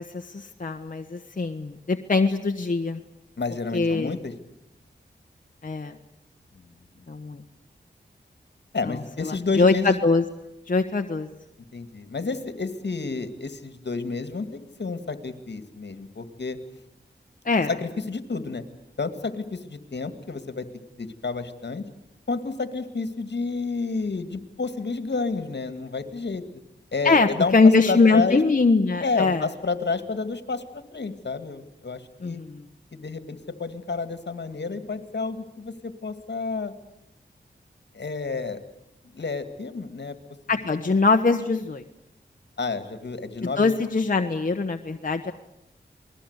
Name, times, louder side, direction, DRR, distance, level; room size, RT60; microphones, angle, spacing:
voice 1, 0.0-3.0 3.7-4.1 5.6-6.0 7.1-7.4 8.8-8.9 9.2-10.2 10.7-11.3 17.4-17.7 27.0-29.4 32.2-32.6 40.5-41.8 43.6-45.3, left 3 dB, 50° left, 4 dB, 1.3 m, -22 dB
voice 2, 3.4-4.3 6.5-6.6 7.0-7.1 8.7-10.0 11.7-16.6 17.7-18.6 19.0-20.7 21.0-21.8 22.3-26.4 26.9-27.6 27.9-28.4 29.0-32.4 32.9-36.7 37.9-38.6 39.1-40.2 42.6-43.7, left 4 dB, 70° left, 10 dB, 2.2 m, -30 dB
28.5 x 20.5 x 8.2 m, 0.85 s
wide cardioid pair, 60°, 19 cm